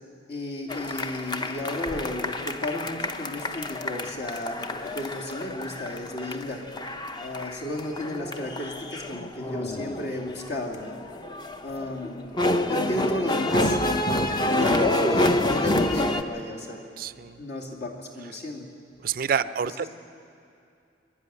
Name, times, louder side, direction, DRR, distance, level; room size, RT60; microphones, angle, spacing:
voice 1, 0.3-6.6 7.2-11.0 11.6-13.8 14.4-16.8 17.1-18.7 19.6-19.9, left 1 dB, 60° left, -1 dB, 2.5 m, -33 dB
sound 1, 0.7-16.2, left 1 dB, 25° left, 0.7 m, -28 dB
voice 2, 17.0-17.4 19.0-19.9, right 7 dB, 50° right, 14 dB, 0.4 m, -28 dB
23.0 x 11.5 x 9.9 m, 2.5 s
head